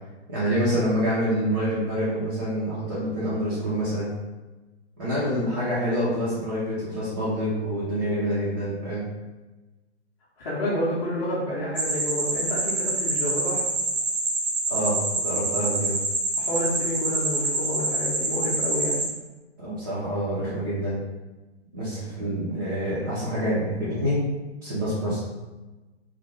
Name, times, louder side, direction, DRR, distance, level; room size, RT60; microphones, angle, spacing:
voice 1, 0.3-4.1 5.0-9.0 14.7-16.0 19.6-21.0 21.7-24.2 24.6-25.2, equal, 20° right, -9 dB, 0.3 m, -27 dB
voice 2, 10.4-13.6 16.4-19.0, left 1 dB, 30° left, -10 dB, 0.6 m, -29 dB
sound 1, 11.8-19.1, right 2 dB, 85° right, 0.6 m, -26 dB
2.4 x 2.1 x 3.1 m, 1.1 s
figure-of-eight pair, 120°, 35 cm